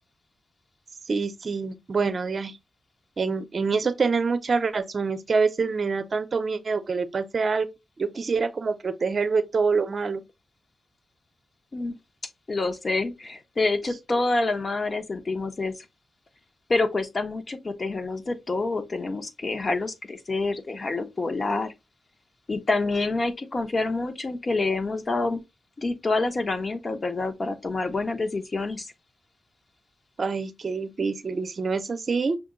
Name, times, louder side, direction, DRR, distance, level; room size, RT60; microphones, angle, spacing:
voice 1, 1.1-2.5 3.2-7.7 8.0-10.2 30.2-32.4, right 4 dB, 50° right, 0.6 m, -26 dB
voice 2, 12.5-15.8 16.7-21.7 22.5-25.4 25.8-28.9, left 3 dB, 40° left, 0.9 m, -27 dB
5.9 x 2.2 x 3.8 m
cardioid pair, 80°, 0 cm